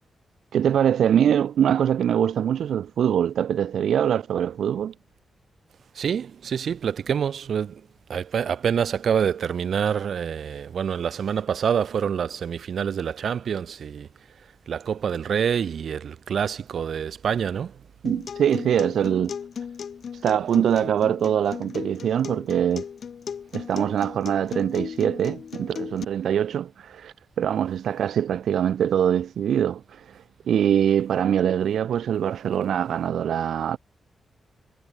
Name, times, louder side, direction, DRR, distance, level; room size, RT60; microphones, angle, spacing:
voice 1, 0.5-4.9 18.0-19.4 20.1-22.8 23.5-33.8, right 9 dB, 80° right, 0.7 m, -23 dB
voice 2, 5.9-7.8 8.1-14.1 14.7-17.7, right 7 dB, 60° right, 1.4 m, -26 dB
Acoustic guitar, 18.0-26.0, left 7 dB, 50° left, 5.5 m, -36 dB
wide cardioid pair, 170°, 0 cm